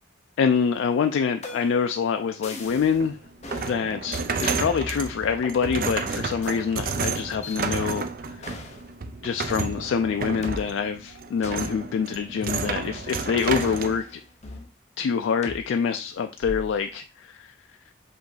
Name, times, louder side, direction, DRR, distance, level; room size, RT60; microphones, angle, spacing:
voice 1, 0.4-3.2 3.7-8.5 9.2-14.2 15.0-17.5, left 6 dB, 75° left, 7 dB, 0.3 m, -26 dB
sound 1, 1.4-1.9 2.4-3.0 3.4-3.7 4.4-5.6 6.4-6.6 7.4-7.6 8.4-8.8 9.4-9.5 10.4-10.6 11.4-11.7 12.4-13.0 13.4-14.7 15.4-15.6 16.4-16.8, left 2 dB, 35° left, 0.6 m, -38 dB
sound 2, 2.6-14.0, right 5 dB, 45° right, 0.4 m, -31 dB
5.0 x 2.6 x 3.9 m, 0.35 s
head